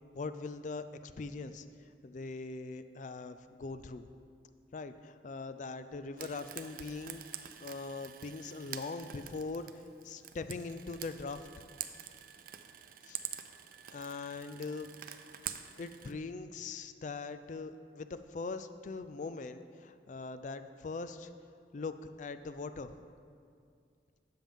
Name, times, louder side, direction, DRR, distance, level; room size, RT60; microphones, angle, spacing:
voice 1, 0.1-1.7 2.0-4.1 4.7-9.7 10.0-11.4 13.0-13.2 13.9-14.9 15.8-21.3 21.7-23.0, left 3 dB, 45° left, 11 dB, 0.3 m, -41 dB
Frying (food), 6.2-16.1, right 10 dB, 50° right, 0.4 m, -46 dB
12.0 x 7.5 x 3.6 m, 2.3 s
head